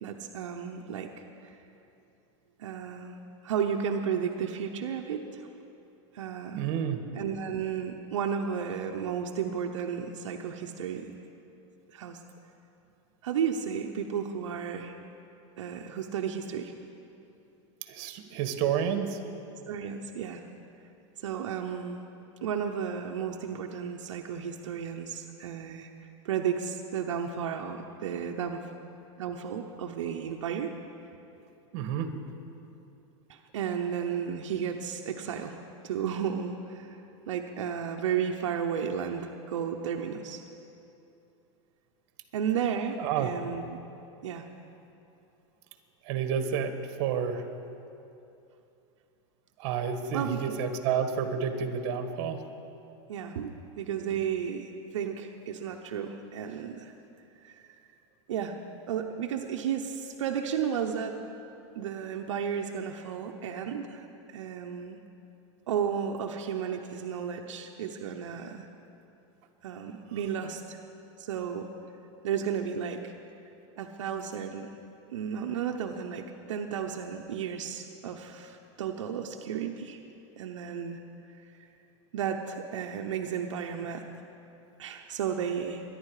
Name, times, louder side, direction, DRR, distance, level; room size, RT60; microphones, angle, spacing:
voice 1, 0.0-1.6 2.6-5.5 6.1-6.6 7.1-11.1 11.9-12.2 13.2-15.0 15.6-16.7 19.7-20.4 21.2-22.0 22.4-25.9 26.2-28.6 29.2-30.7 33.3-37.0 37.3-40.4 42.3-43.8 44.2-44.5 50.1-50.6 53.1-56.9 57.4-57.6 58.3-58.6 58.9-61.2 61.7-64.1 64.3-65.0 65.7-68.7 69.6-70.8 71.2-71.7 72.2-73.1 73.8-74.7 75.1-80.0 80.4-81.0 82.1-84.1 84.8-85.8, right 7 dB, 90° right, 3 dB, 0.9 m, -33 dB
voice 2, 6.5-7.0 17.8-19.2 31.7-32.1 43.0-43.3 46.0-46.7 47.0-47.4 49.6-52.4, right 7 dB, 55° right, 8 dB, 1.5 m, -30 dB
23.5 x 11.0 x 4.9 m, 2.8 s
supercardioid pair, 135°, 15 cm